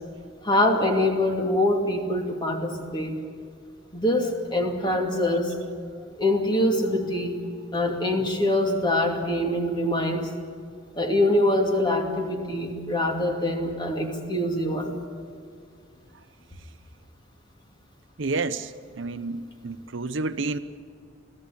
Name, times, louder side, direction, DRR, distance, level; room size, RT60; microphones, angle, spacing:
voice 1, 0.4-3.1 3.9-5.6 6.2-7.4 7.7-10.3 11.0-15.0, left 1 dB, 20° left, 3 dB, 2.5 m, -24 dB
voice 2, 18.2-20.6, right 3 dB, 65° right, 11 dB, 0.8 m, -30 dB
25.5 x 16.0 x 8.6 m, 2.2 s
head